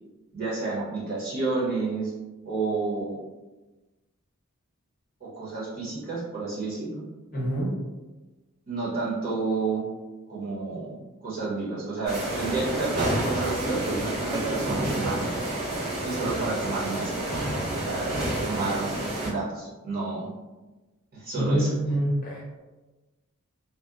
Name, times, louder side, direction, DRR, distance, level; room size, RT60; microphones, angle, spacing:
voice 1, 0.3-2.1 2.4-3.2 5.2-7.0 8.7-9.8 10.3-15.3 16.0-17.4 17.8-18.1 18.4-20.3 21.1-21.7, right 3 dB, 45° right, -7 dB, 0.8 m, -30 dB
voice 2, 7.3-7.7 21.4-22.6, right 1 dB, 40° left, -5 dB, 0.6 m, -26 dB
sound 1, 12.1-19.3, right 1 dB, 70° right, 1.2 m, -29 dB
2.8 x 2.1 x 2.3 m, 1.2 s
head